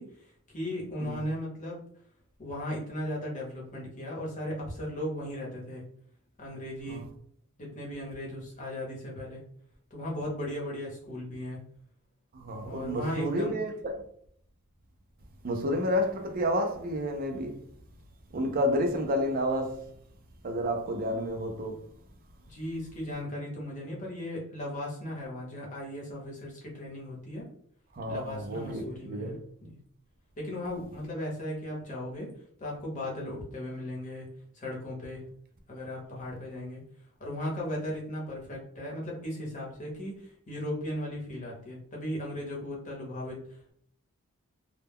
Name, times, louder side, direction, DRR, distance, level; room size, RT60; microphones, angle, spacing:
voice 1, 0.0-1.8 2.4-5.8 6.4-7.0 7.6-9.4 9.9-11.6 12.6-13.5 22.5-27.4 28.1-29.3 29.6-29.8 30.4-32.3 32.6-34.3 34.5-35.2 35.7-36.8 37.2-43.7, left 1 dB, 35° left, 0.9 m, -37 dB
voice 2, 12.3-14.0 15.4-17.6 18.3-19.9 20.4-21.9 27.9-29.4, equal, 40° right, 0.4 m, -30 dB
2.1 x 2.1 x 3.4 m
head